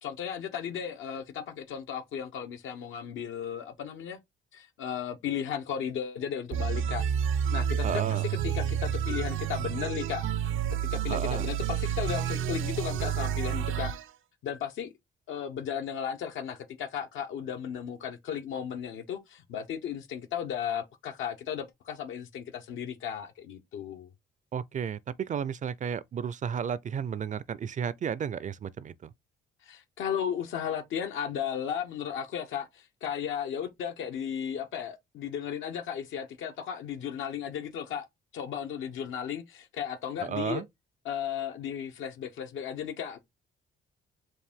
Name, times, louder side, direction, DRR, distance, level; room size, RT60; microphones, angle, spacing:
voice 1, 0.0-4.2 4.5-7.1 7.5-10.3 10.9-13.9 14.4-14.9 15.3-24.1 29.6-38.1 38.3-40.6 41.0-43.2, left 8 dB, 80° left, 0.8 m, -35 dB
sound 1, 6.5-14.1, right 9 dB, 80° right, 0.6 m, -30 dB
voice 2, 7.8-8.3 11.1-11.5 24.5-29.1 40.2-40.7, right 7 dB, 40° right, 0.4 m, -33 dB
4.7 x 2.6 x 3.5 m
cardioid pair, 90°, 20 cm